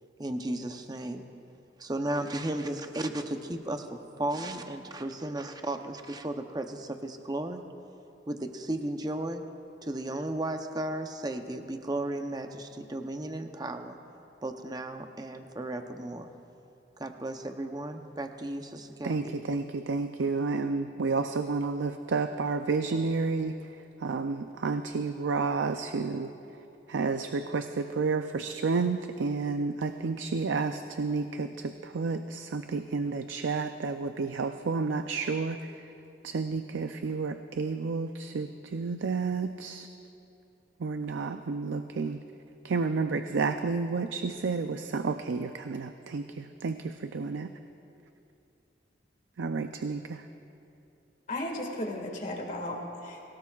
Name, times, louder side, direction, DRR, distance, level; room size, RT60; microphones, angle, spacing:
voice 1, 0.2-1.2 1.8-7.6 8.3-9.4 9.8-14.0 14.4-16.3 17.0-19.4, right 1 dB, 20° right, 6 dB, 0.7 m, -34 dB
voice 2, 19.0-23.5 24.0-26.3 26.9-35.7 36.2-39.9 40.8-42.2 42.6-47.5 49.4-50.2, right 4 dB, 85° right, 8 dB, 0.5 m, -31 dB
voice 3, 51.3-53.3, left 1 dB, 45° left, 1 dB, 1.9 m, -35 dB
24.0 x 17.5 x 2.4 m, 2.8 s
head